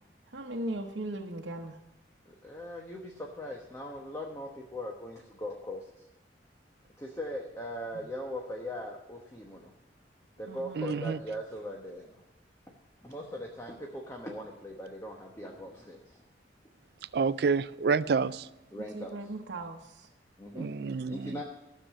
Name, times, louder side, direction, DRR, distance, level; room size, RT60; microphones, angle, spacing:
voice 1, 0.3-1.8 10.5-10.8 18.9-20.1, right 1 dB, 90° right, 0.9 m, -38 dB
voice 2, 2.2-6.1 7.0-9.7 10.4-12.2 13.0-16.2 18.7-19.3 20.4-20.7 21.1-21.4, equal, 15° left, 1.1 m, -40 dB
voice 3, 10.8-11.2 17.1-18.5 20.6-21.3, right 5 dB, 60° right, 0.4 m, -28 dB
13.5 x 6.8 x 7.4 m
head